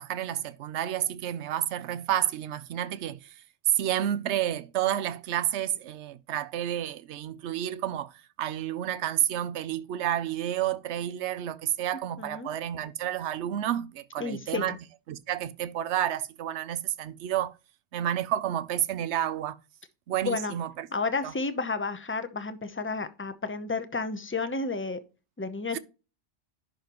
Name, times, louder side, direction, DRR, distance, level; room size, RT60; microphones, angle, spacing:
voice 1, 0.0-3.4 3.7-8.1 8.4-14.8 15.1-17.5 17.9-19.6 20.1-20.9 21.2-21.3 25.7-25.8, right 11 dB, 85° right, 0.9 m, -30 dB
voice 2, 12.2-12.5 14.2-14.8 20.2-20.5 20.9-25.0 25.4-25.8, left 3 dB, 15° left, 0.7 m, -31 dB
11.0 x 5.2 x 3.0 m
omnidirectional pair, 1.1 m